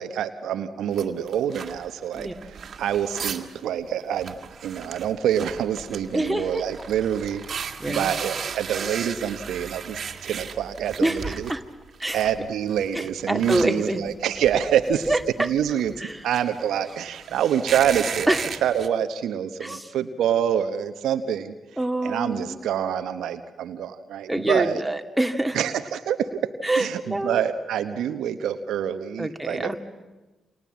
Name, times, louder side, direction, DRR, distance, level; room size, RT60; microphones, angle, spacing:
voice 1, 0.0-11.5 12.1-15.1 15.4-15.9 16.2-18.3 18.6-21.5 22.0-24.8 25.5-26.5 26.8-29.7, right 9 dB, 70° right, 9 dB, 1.2 m, -26 dB
sound 1, 0.9-3.5 3.8-3.9 4.2-11.6 11.9-18.9, right 6 dB, 55° right, 2.0 m, -36 dB
voice 2, 6.1-6.6 7.8-8.1 11.0-11.6 12.0-12.3 12.9-14.0 15.1-15.5 16.0-16.2 18.3-18.4 19.6-19.9 21.8-22.6 24.3-25.6 26.6-27.4 29.2-29.8, right 1 dB, 10° right, 4 dB, 2.6 m, -26 dB
29.0 x 27.0 x 7.5 m, 1.2 s
hypercardioid pair, 40°, 0 cm